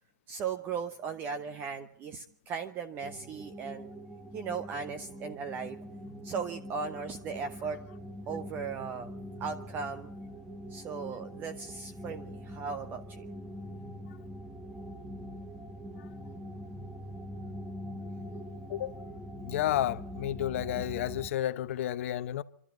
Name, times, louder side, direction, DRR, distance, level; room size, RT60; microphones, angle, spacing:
voice 1, 0.3-3.9 4.3-5.8 6.2-7.8 8.3-9.1 9.4-10.1 10.7-13.3, right 6 dB, 20° right, 0.8 m, -37 dB
sound 1, 3.0-21.3, equal, 5° right, 1.2 m, -43 dB
voice 2, 19.4-22.4, left 12 dB, 45° left, 0.8 m, -31 dB
24.5 x 12.5 x 9.2 m
hypercardioid pair, 150°, 10 cm